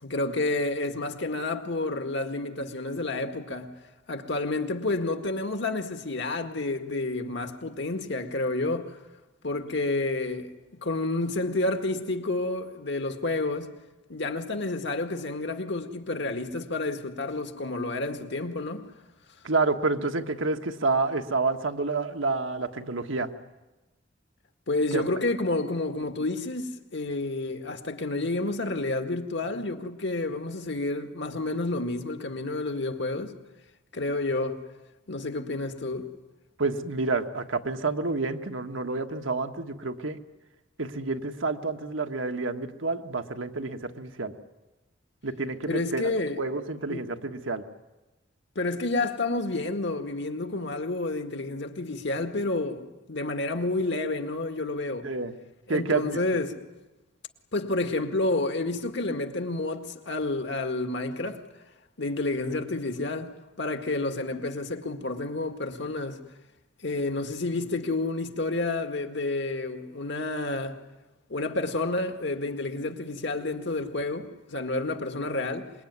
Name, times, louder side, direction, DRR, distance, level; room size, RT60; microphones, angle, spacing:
voice 1, 0.0-3.7 4.1-9.0 9.4-10.5 10.8-13.7 14.1-18.9 24.7-33.3 33.9-34.6 35.1-36.1 45.7-46.4 46.9-47.1 48.6-52.8 53.1-55.1 55.7-56.6 57.5-61.4 62.0-66.2 66.8-70.8 71.3-75.7, left 2 dB, 65° left, 2.0 m, -30 dB
voice 2, 19.4-23.3 24.9-25.0 36.6-40.2 40.8-44.3 45.2-46.1 46.4-47.6 55.0-55.4 55.7-56.2, right 3 dB, 85° right, 1.5 m, -29 dB
26.0 x 21.5 x 9.6 m
head